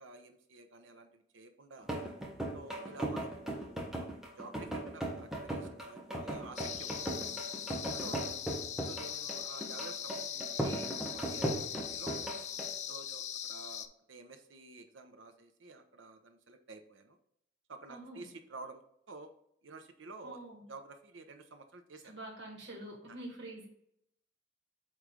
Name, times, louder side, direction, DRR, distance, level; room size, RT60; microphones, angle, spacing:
voice 1, 0.0-2.0 2.5-7.1 8.0-8.4 8.9-12.3 12.9-17.2 17.7-18.8 19.1-19.3 19.6-20.4 20.7-22.1, right 3 dB, 90° right, 7 dB, 0.8 m, -51 dB
sound 1, 1.8-12.8, right 1 dB, 5° right, 1.0 m, -38 dB
sound 2, 6.6-13.9, left 9 dB, 35° left, 0.3 m, -41 dB
voice 2, 7.8-8.2 17.9-18.3 20.2-20.6 22.0-23.7, right 1 dB, 70° right, -1 dB, 2.1 m, -46 dB
8.4 x 3.2 x 3.8 m, 0.74 s
head